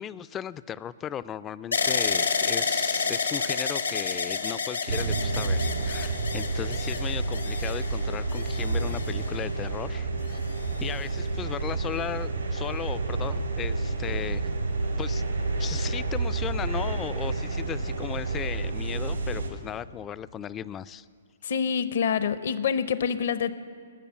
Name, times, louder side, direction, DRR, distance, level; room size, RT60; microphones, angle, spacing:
voice 1, 0.0-10.4 10.8-14.5 15.0-15.2 15.6-21.1, left 9 dB, 20° left, 17 dB, 0.3 m, -36 dB
sound 1, 1.7-9.7 10.4-11.1, left 5 dB, 85° left, 1.2 m, -30 dB
sound 2, 4.9-19.5, right 3 dB, 90° right, 2.6 m, -29 dB
voice 2, 21.4-23.5, left 7 dB, 60° left, 14 dB, 0.7 m, -26 dB
20.5 x 6.8 x 8.5 m, 2.1 s
figure-of-eight pair, 120°, 0 cm